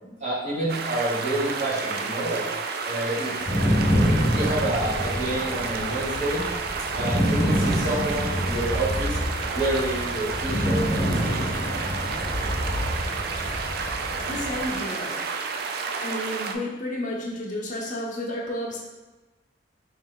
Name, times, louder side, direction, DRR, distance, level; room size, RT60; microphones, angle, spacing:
voice 1, 0.0-2.5 2.8-3.3 3.6-3.8 4.2-6.5 6.9-9.2 9.5-11.5, right 1 dB, 40° right, -8 dB, 1.4 m, -28 dB
sound 1, 0.7-16.5, right 5 dB, 55° right, 0.4 m, -31 dB
sound 2, 3.4-14.8, equal, 5° left, 0.8 m, -27 dB
voice 2, 14.2-15.7 16.0-18.8, left 1 dB, 45° left, -3 dB, 0.8 m, -32 dB
3.3 x 3.1 x 3.8 m, 1.2 s
head